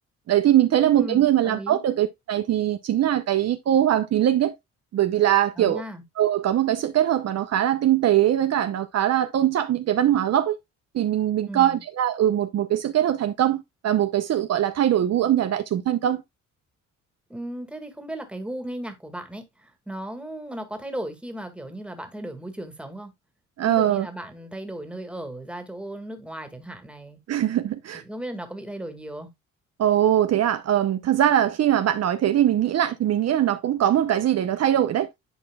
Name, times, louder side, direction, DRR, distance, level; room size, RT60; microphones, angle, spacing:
voice 1, 0.3-4.5 4.9-5.8 6.2-10.6 10.9-16.2 23.6-24.1 27.3-28.0 29.8-35.1, right 11 dB, 55° right, 0.7 m, -21 dB
voice 2, 0.9-1.8 5.6-6.0 11.5-11.8 17.3-23.1 23.6-27.2 27.9-29.3, right 1 dB, 5° right, 2.0 m, -36 dB
11.0 x 4.3 x 2.3 m
cardioid pair, 90°, 30 cm